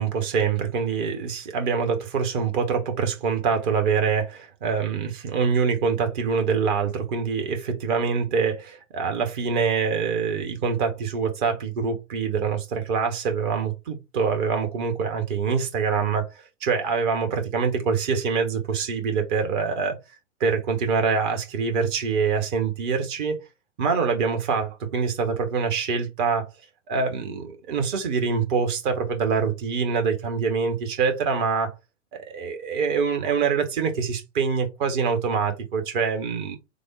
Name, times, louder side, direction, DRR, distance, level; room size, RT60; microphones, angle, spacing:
voice 1, 0.0-16.3 16.6-20.0 20.4-23.4 23.8-26.5 26.9-31.7 32.1-36.6, right 5 dB, 40° right, 1.1 m, -25 dB
3.5 x 2.0 x 3.7 m
figure-of-eight pair, 100°, 37 cm